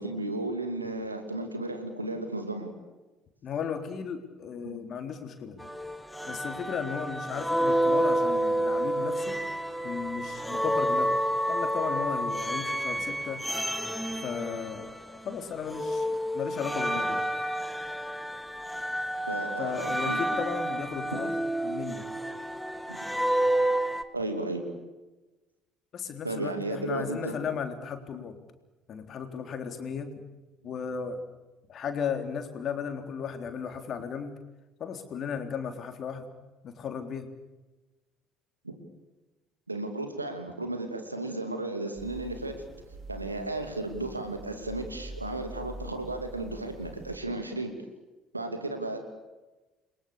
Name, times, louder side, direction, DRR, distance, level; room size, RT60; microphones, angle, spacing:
voice 1, 0.0-2.7 4.6-4.8 19.3-20.2 21.1-21.2 22.9-23.0 24.1-24.6 26.2-27.3 38.6-38.7 39.7-42.5 43.1-47.7 48.3-49.0, right 2 dB, 85° right, 6 dB, 2.7 m, -34 dB
voice 2, 3.4-5.7 6.3-9.4 9.8-11.2 11.5-13.4 14.2-17.2 19.6-21.3 21.6-22.1 25.9-28.4 28.9-30.1 30.6-31.2 31.7-34.3 34.8-36.3 36.6-37.3, left 6 dB, 45° left, 6 dB, 3.7 m, -35 dB
sound 1, 5.6-15.3 15.7-24.0, equal, ahead, 1.9 m, -29 dB
sound 2, 42.0-47.2, right 1 dB, 50° right, 3.7 m, -45 dB
29.5 x 22.5 x 7.1 m, 1.1 s
figure-of-eight pair, 55°, 0 cm